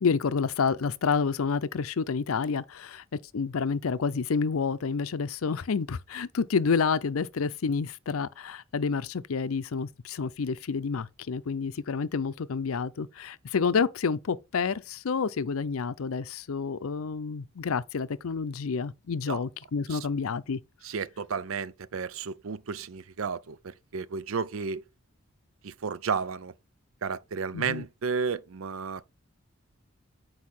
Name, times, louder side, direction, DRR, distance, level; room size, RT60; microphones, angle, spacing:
voice 1, 0.0-3.0 3.3-20.6 27.5-27.8, left 5 dB, 80° left, 0.5 m, -29 dB
voice 2, 20.8-24.8 25.6-26.5 27.0-29.0, right 5 dB, 70° right, 0.5 m, -32 dB
8.4 x 4.8 x 4.2 m
head